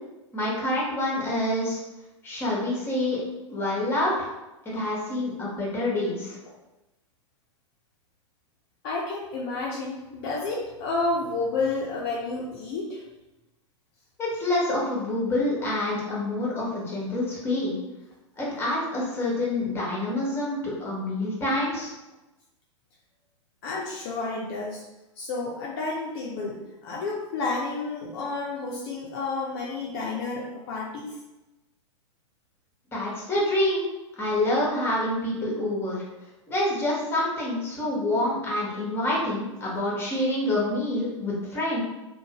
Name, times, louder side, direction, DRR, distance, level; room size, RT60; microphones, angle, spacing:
voice 1, 0.3-1.8 2.2-3.2 3.5-4.3 4.7-6.4 14.2-17.7 18.4-21.9 32.9-33.9 34.2-36.0 36.5-41.8, left 1 dB, 15° left, -4 dB, 0.9 m, -27 dB
voice 2, 8.8-13.0 23.6-24.8 25.2-31.2, left 3 dB, 50° left, -3 dB, 0.5 m, -30 dB
2.5 x 2.1 x 2.8 m, 1.0 s
figure-of-eight pair, 100°, 16 cm